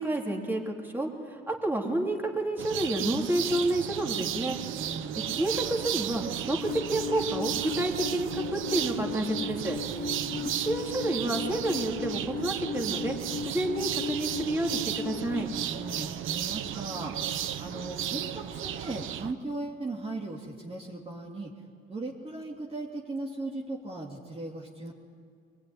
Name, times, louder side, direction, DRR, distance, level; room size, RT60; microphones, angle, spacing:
voice 1, 0.0-4.6 5.3-9.8 10.6-13.2 13.5-15.5, right 1 dB, 10° right, 0 dB, 3.5 m, -30 dB
sound 1, 2.6-19.3, right 10 dB, 80° right, 1.0 m, -34 dB
voice 2, 4.7-5.2 10.1-10.5 15.7-17.2 17.6-21.5 21.9-24.9, right 2 dB, 30° right, -2 dB, 2.8 m, -38 dB
Alarm, 6.5-15.4, left 5 dB, 50° left, 2.2 m, -37 dB
24.0 x 20.5 x 9.7 m, 2.1 s
cardioid pair, 90°, 20 cm